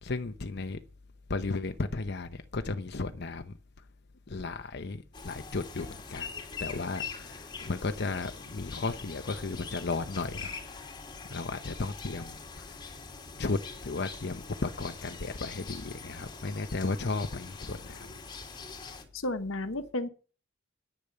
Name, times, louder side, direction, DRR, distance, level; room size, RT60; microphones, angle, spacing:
voice 1, 0.0-0.8 1.3-3.6 4.3-10.5 11.3-12.7 13.4-18.1, left 3 dB, 55° left, 0.8 m, -34 dB
sound 1, 5.1-19.0, left 5 dB, 25° left, 3.0 m, -43 dB
voice 2, 19.1-20.1, left 2 dB, 80° left, 1.2 m, -32 dB
10.5 x 10.0 x 6.7 m
head